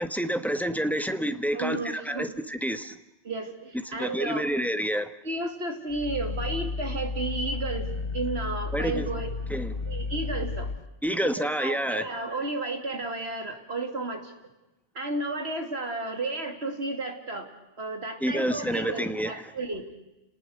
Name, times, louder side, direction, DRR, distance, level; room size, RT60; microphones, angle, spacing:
voice 1, 0.0-3.0 3.8-5.1 8.7-9.1 9.5-9.8 11.0-12.0 18.2-19.3, equal, ahead, 9 dB, 1.2 m, -28 dB
voice 2, 1.5-2.3 3.2-4.5 5.2-7.9 8.1-9.3 9.9-10.7 11.4-14.3 14.9-17.5 17.8-19.9, right 2 dB, 65° right, 5 dB, 3.1 m, -32 dB
Growling, 5.9-10.9, left 3 dB, 55° left, 1.2 m, -33 dB
30.0 x 19.5 x 6.6 m, 0.99 s
omnidirectional pair, 1.2 m